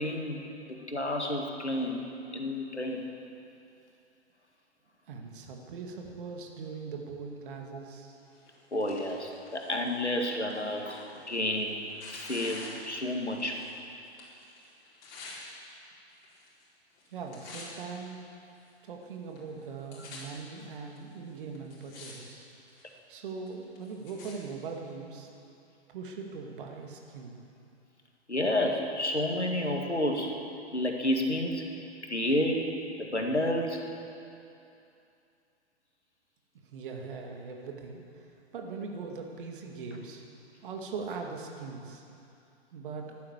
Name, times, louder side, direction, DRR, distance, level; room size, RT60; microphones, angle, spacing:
voice 1, 0.0-2.0 2.3-3.1 8.7-11.8 12.1-13.6 28.3-30.4 30.7-31.7 32.0-32.6 33.0-33.8, left 1 dB, 85° left, 2 dB, 2.0 m, -30 dB
voice 2, 5.1-8.2 17.1-18.2 18.8-22.4 22.8-25.3 25.9-27.4 36.7-40.2 40.6-42.0 42.7-43.2, right 5 dB, 50° right, 2 dB, 2.2 m, -41 dB
Tearing, 8.3-13.8 14.0-15.4 16.1-16.7 16.9-17.9 18.5-18.6 19.4-19.5 19.6-20.2 21.0-21.1 21.5-22.1 22.4-22.9 23.5-24.3 25.1-25.2, left 3 dB, 45° left, 4.5 m, -48 dB
15.0 x 11.5 x 7.3 m, 2.7 s
figure-of-eight pair, 110°, 33 cm